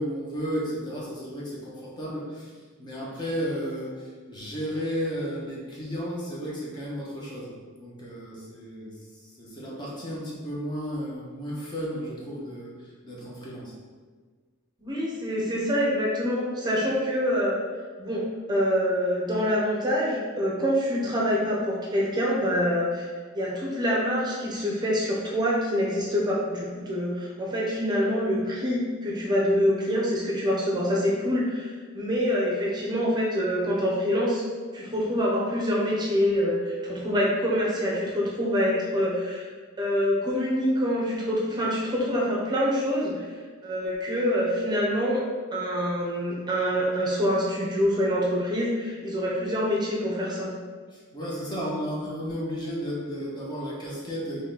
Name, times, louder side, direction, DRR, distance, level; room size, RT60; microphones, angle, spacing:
voice 1, 0.0-2.5 2.8-13.7 50.9-54.4, equal, 20° left, -5 dB, 1.1 m, -33 dB
voice 2, 14.8-17.6 18.0-23.1 23.3-34.4 34.7-39.5 39.8-43.3 43.6-45.2 45.5-50.5, equal, 20° right, -4 dB, 0.8 m, -26 dB
4.1 x 3.3 x 4.0 m, 1.5 s
head